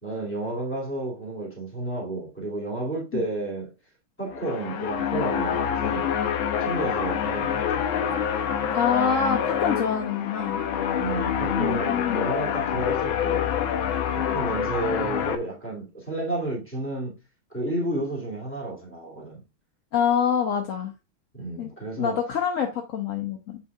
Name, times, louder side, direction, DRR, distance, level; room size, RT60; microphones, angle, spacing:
voice 1, 0.0-3.7 4.2-6.1 6.6-7.8 11.0-13.5 14.1-17.2 17.5-19.4 21.3-22.2, right 2 dB, 5° left, 2.4 m, -31 dB
sound 1, 4.3-15.4, left 8 dB, 80° left, 1.5 m, -26 dB
voice 2, 8.7-10.6 11.6-12.2 19.9-20.9 21.6-21.7 22.0-23.6, left 7 dB, 65° left, 0.8 m, -26 dB
7.2 x 5.6 x 2.4 m
omnidirectional pair, 2.2 m